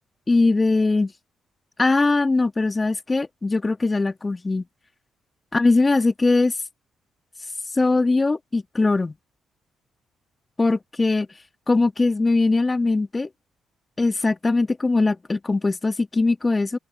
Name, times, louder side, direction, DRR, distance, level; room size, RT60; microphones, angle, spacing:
voice 1, 0.3-1.1 1.8-4.6 5.5-6.5 7.7-9.1 10.6-11.3 11.7-13.3 14.0-16.8, left 3 dB, 30° left, 2.0 m, -21 dB
open air
hypercardioid pair, 45°, 0 cm